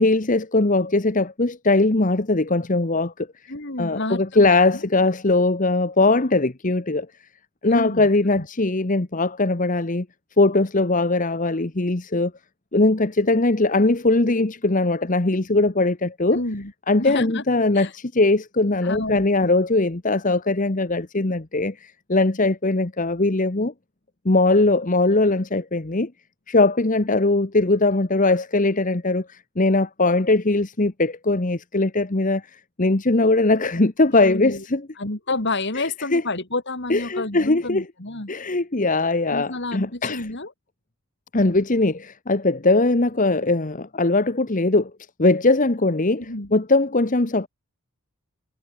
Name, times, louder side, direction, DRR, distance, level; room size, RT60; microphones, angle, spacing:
voice 1, 0.0-3.3 3.8-7.1 7.6-10.1 10.4-12.3 12.7-16.4 16.9-23.7 24.2-26.1 26.5-32.4 32.8-34.8 35.7-36.2 36.9-37.8 38.3-40.2 41.3-44.9 45.2-47.5, left 2 dB, 35° left, 1.1 m, -20 dB
voice 2, 3.5-4.8 7.7-8.5 16.3-16.7 17.0-17.4 17.7-17.9 18.8-19.5 34.1-34.6 35.0-38.3 39.3-40.5 46.2-46.5, left 2 dB, 50° left, 3.2 m, -29 dB
head